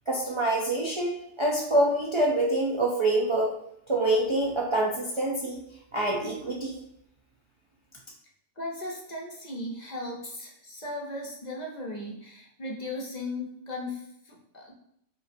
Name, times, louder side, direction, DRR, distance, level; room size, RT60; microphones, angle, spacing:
voice 1, 0.1-3.5 3.9-5.6 5.9-6.7, right 1 dB, 40° right, -3 dB, 0.4 m, -26 dB
voice 2, 8.6-14.7, left 2 dB, 40° left, -1 dB, 0.7 m, -37 dB
5.0 x 3.1 x 2.6 m, 0.74 s
omnidirectional pair, 1.2 m